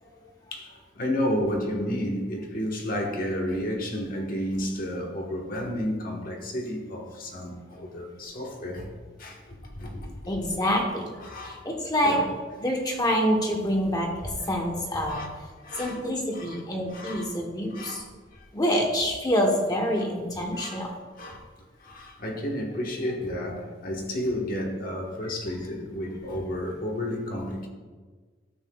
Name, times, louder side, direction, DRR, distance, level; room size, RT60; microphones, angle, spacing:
voice 1, 0.0-8.9 9.2-10.2 10.5-10.6 11.2-11.6 12.0-12.3 15.1-15.3 15.6-16.0 16.3-16.6 16.9-17.3 17.7-18.0 18.3-18.4 20.5-20.8 21.2-21.4 21.8-27.7, equal, 50° left, 1.3 m, -32 dB
voice 2, 10.3-11.1 11.4-12.2 12.6-15.2 15.8-18.0 18.5-20.9, equal, 20° left, 1.0 m, -26 dB
12.5 x 8.1 x 2.3 m
head